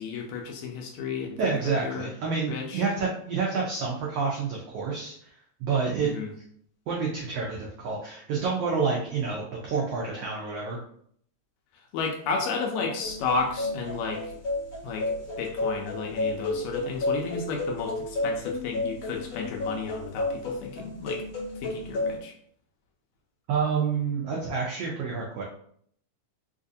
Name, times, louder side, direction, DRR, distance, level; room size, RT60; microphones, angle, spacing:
voice 1, 0.0-2.1 2.5-2.8 6.0-6.3 11.9-14.3 14.8-21.2 21.6-22.3, left 4 dB, 80° left, 1 dB, 1.7 m, -32 dB
voice 2, 1.4-5.3 5.6-6.1 6.9-10.8 23.5-25.4, right 5 dB, 85° right, -2 dB, 1.3 m, -28 dB
sound 1, 13.0-22.2, left 2 dB, 55° left, 1.7 m, -31 dB
4.6 x 2.5 x 2.6 m, 0.64 s
omnidirectional pair, 3.5 m